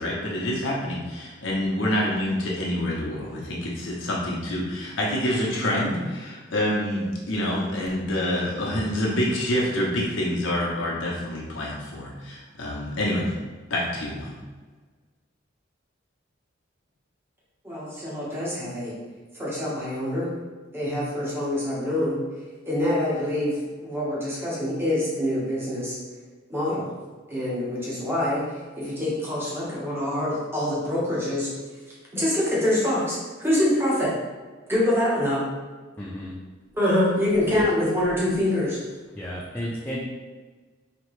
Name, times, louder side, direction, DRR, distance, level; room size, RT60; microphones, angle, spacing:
voice 1, 0.0-13.3 13.7-14.3, left 1 dB, 85° left, -4 dB, 0.9 m, -27 dB
voice 2, 17.6-18.9 19.3-20.3 20.7-22.2 22.7-23.6 23.8-26.0 26.5-26.9 27.3-28.4 28.8-31.5 32.1-34.1 34.7-35.4 36.7-38.8, left 1 dB, 10° right, -7 dB, 1.1 m, -25 dB
voice 3, 36.0-36.3 37.5-37.6 39.2-40.0, equal, 10° left, -5 dB, 0.4 m, -33 dB
4.4 x 2.9 x 3.2 m, 1.4 s
head